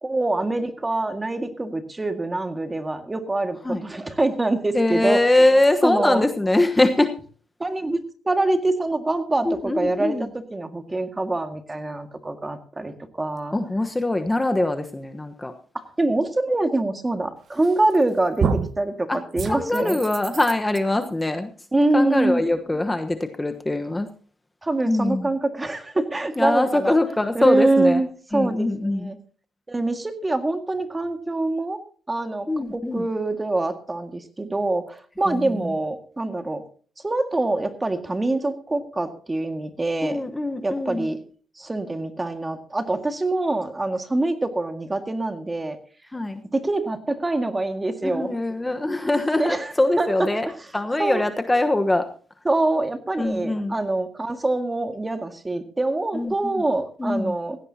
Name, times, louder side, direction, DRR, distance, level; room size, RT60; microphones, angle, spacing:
voice 1, 0.0-5.2 5.8-6.3 7.6-13.5 16.0-20.0 21.7-22.4 24.6-27.0 27.4-28.1 28.3-29.2 29.7-31.8 32.1-36.6 37.0-40.2 40.6-41.2 41.6-45.8 46.5-48.3 49.4-50.3 51.0-51.2 52.5-57.6, right 2 dB, 20° right, 7 dB, 1.9 m, -25 dB
voice 2, 4.7-7.1 9.4-10.3 13.5-15.5 19.1-19.2 19.4-21.5 21.9-24.1 24.9-25.3 26.4-28.0 28.3-29.1 32.5-33.0 35.2-35.7 40.0-41.1 46.1-46.4 48.0-50.5 50.7-52.1 53.2-53.8 56.1-56.6 57.0-57.3, left 2 dB, 15° left, 7 dB, 1.1 m, -22 dB
sound 1, 17.6-18.0 18.4-18.8 19.4-20.8, right 5 dB, 55° right, 1.2 m, -27 dB
17.0 x 16.0 x 2.8 m, 0.42 s
cardioid pair, 90°, 0 cm